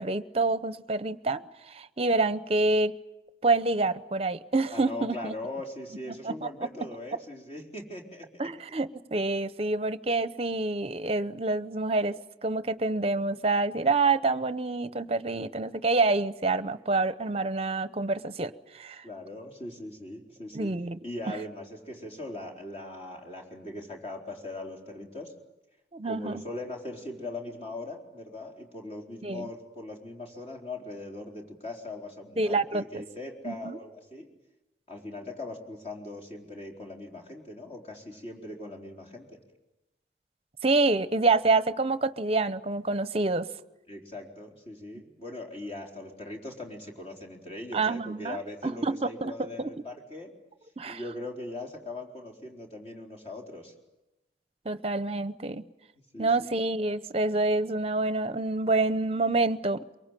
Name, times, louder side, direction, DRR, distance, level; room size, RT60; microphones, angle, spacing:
voice 1, 0.0-2.9 3.4-5.3 6.2-6.5 8.4-19.0 20.5-21.0 25.9-26.4 29.2-29.5 32.4-33.0 33.4-33.8 40.6-43.5 47.7-49.7 50.8-51.0 54.6-55.6 56.2-59.9, right 3 dB, 35° right, 13 dB, 0.8 m, -27 dB
voice 2, 4.7-8.3 19.0-20.7 21.0-25.3 26.1-34.3 34.9-39.4 43.9-50.3 50.8-53.7 56.1-56.5, left 2 dB, 35° left, 2 dB, 4.2 m, -40 dB
23.5 x 23.5 x 9.1 m, 0.97 s
head